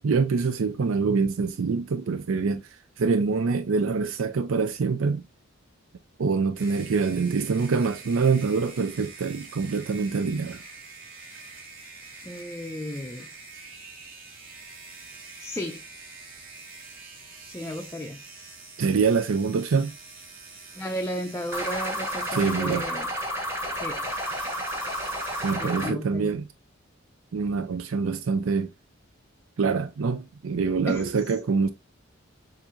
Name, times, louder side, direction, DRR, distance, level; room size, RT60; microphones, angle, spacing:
voice 1, 0.0-2.6 3.0-5.2 6.2-10.6 18.8-19.9 22.3-22.9 25.4-26.5 27.3-28.7 29.6-31.7, right 5 dB, 90° right, 0.5 m, -25 dB
sound 1, 6.5-22.9 24.0-25.5, right 3 dB, 45° right, 2.1 m, -45 dB
voice 2, 12.3-13.3 15.4-15.8 17.5-18.2 20.7-23.1 23.8-24.0 25.6-26.3 30.9-31.1, equal, 15° left, 0.4 m, -34 dB
sound 2, 21.5-25.9, equal, 15° right, 1.3 m, -31 dB
7.1 x 2.6 x 2.5 m
head